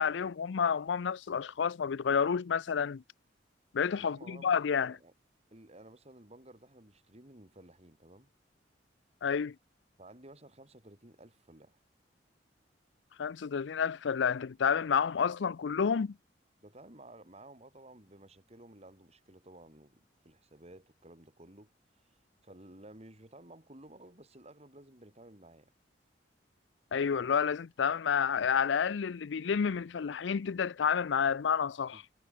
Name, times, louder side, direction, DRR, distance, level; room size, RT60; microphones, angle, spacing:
voice 1, 0.0-3.0 3.7-5.0 9.2-9.6 13.2-16.1 26.9-32.0, left 6 dB, 85° left, 0.5 m, -30 dB
voice 2, 4.0-5.1 5.5-8.3 10.0-11.8 16.6-21.7 22.0-25.7 31.9-32.0, right 1 dB, 35° right, 4.2 m, -54 dB
head